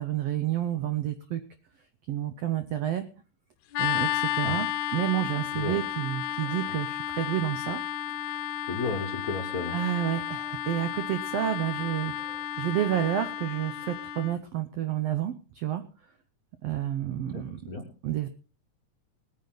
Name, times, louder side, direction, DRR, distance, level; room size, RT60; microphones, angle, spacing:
voice 1, 0.0-1.4 2.1-3.1 3.8-4.7 4.9-7.8 9.7-15.8 16.6-17.6 18.0-18.3, right 12 dB, 85° right, 10 dB, 1.4 m, -30 dB
sound 1, 3.7-14.3, left 11 dB, 70° left, 1.8 m, -32 dB
voice 2, 8.7-9.7 17.3-17.8, left 3 dB, 40° left, 2 dB, 1.3 m, -33 dB
20.0 x 9.7 x 4.0 m, 0.36 s
omnidirectional pair, 3.8 m